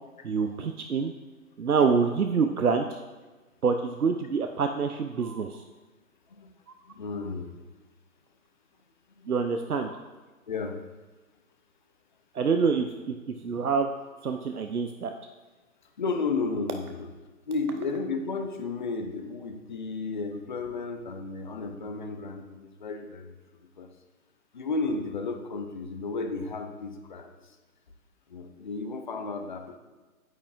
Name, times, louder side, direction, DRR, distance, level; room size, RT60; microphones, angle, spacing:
voice 1, 0.2-1.1 1.6-3.0 3.6-5.6 9.3-10.0 12.3-13.9 14.2-15.1, right 5 dB, 80° right, 6 dB, 0.6 m, -26 dB
voice 2, 6.8-7.5 9.1-9.3 10.5-10.8 16.0-17.1 17.5-23.3 23.8-23.9 24.5-27.6 28.3-29.8, left 3 dB, 35° left, 5 dB, 0.6 m, -33 dB
9.0 x 8.6 x 2.4 m, 1.3 s
figure-of-eight pair, 135°, 43 cm